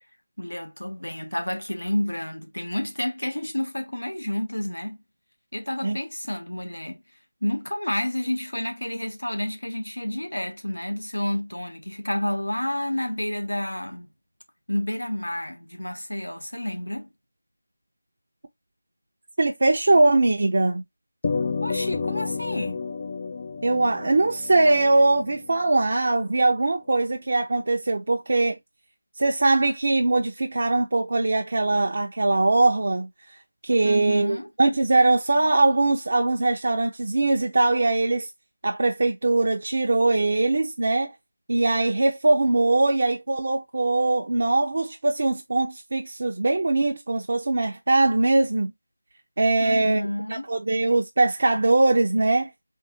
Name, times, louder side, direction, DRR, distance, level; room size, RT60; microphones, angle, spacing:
voice 1, 0.4-5.0 5.5-7.0 7.4-14.1 14.7-17.1 21.6-22.8 33.8-34.5 49.6-50.5, left 1 dB, 90° left, 1.1 m, -30 dB
voice 2, 19.4-20.8 23.6-28.6 29.2-33.1 33.6-38.3 38.6-41.1 41.5-48.7 49.4-52.5, right 2 dB, 50° right, 0.6 m, -21 dB
sound 1, 21.2-25.9, left 4 dB, 30° left, 0.4 m, -31 dB
3.8 x 2.6 x 3.5 m
figure-of-eight pair, 165°, 0 cm